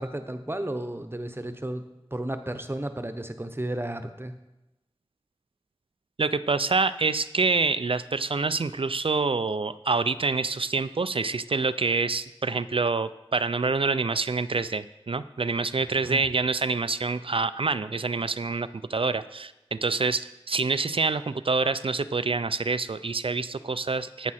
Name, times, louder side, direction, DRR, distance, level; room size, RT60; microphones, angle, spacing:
voice 1, 0.0-1.8 2.1-4.3 16.0-16.2, right 1 dB, 25° right, 9 dB, 0.9 m, -33 dB
voice 2, 6.2-24.3, right 4 dB, 65° right, 13 dB, 0.4 m, -26 dB
11.0 x 8.4 x 4.3 m, 0.97 s
wide cardioid pair, 45°, 10 cm